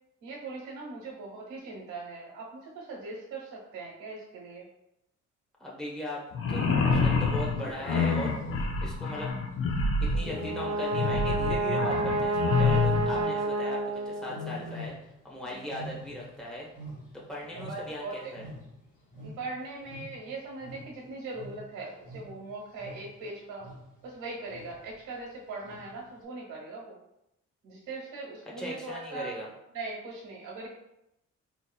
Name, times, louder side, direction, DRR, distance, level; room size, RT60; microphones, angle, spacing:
voice 1, 0.2-4.7 15.4-15.7 17.5-18.3 19.2-23.7 24.0-27.0 27.6-29.3 29.7-30.7, right 3 dB, 85° right, -3 dB, 1.1 m, -40 dB
voice 2, 5.6-6.2 6.5-8.3 8.6-9.4 10.0-14.9 15.2-16.7 17.3-18.4 28.6-29.5, left 1 dB, ahead, -4 dB, 0.9 m, -38 dB
sound 1, 6.3-13.1, left 4 dB, 45° left, 0.6 m, -27 dB
Wild animals, 7.3-9.0 10.1-12.0 12.4-13.6 14.2-15.3 15.5-18.1 18.3-23.2 23.6-24.0 24.5-24.9 25.6-26.1, left 1 dB, 25° left, 1.2 m, -44 dB
Brass instrument, 10.2-14.6, right 2 dB, 55° right, 0.5 m, -30 dB
4.1 x 2.9 x 2.2 m, 0.83 s
cardioid pair, 90°, 30 cm